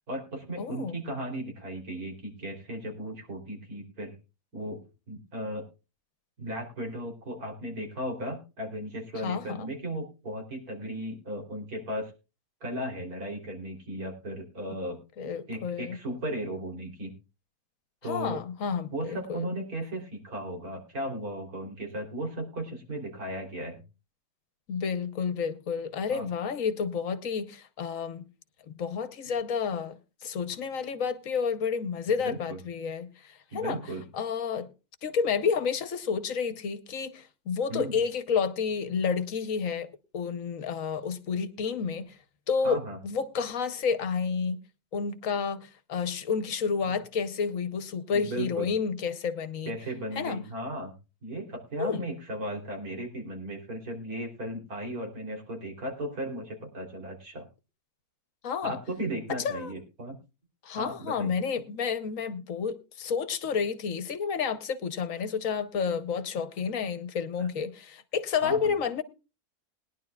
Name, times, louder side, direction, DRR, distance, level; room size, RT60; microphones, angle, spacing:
voice 1, 0.1-4.1 4.5-4.8 5.1-5.6 6.4-12.1 12.6-15.0 15.5-17.1 18.0-18.4 18.9-23.8 26.1-26.3 32.2-32.6 33.5-34.0 37.7-38.0 42.6-43.0 46.8-46.9 48.1-48.7 49.7-50.9 51.2-57.5 58.6-60.2 60.8-61.3 67.4-67.5 68.4-68.7, right 1 dB, 80° right, 3.8 m, -36 dB
voice 2, 0.6-0.9 9.2-9.7 15.2-16.0 18.1-19.4 24.7-28.2 28.8-33.8 34.1-34.7 35.0-42.2 42.5-44.6 44.9-49.7 50.1-50.4 51.8-52.0 58.4-58.8 59.3-59.7 60.6-69.0, left 6 dB, 65° left, 1.3 m, -30 dB
21.0 x 10.5 x 2.3 m
omnidirectional pair, 1.5 m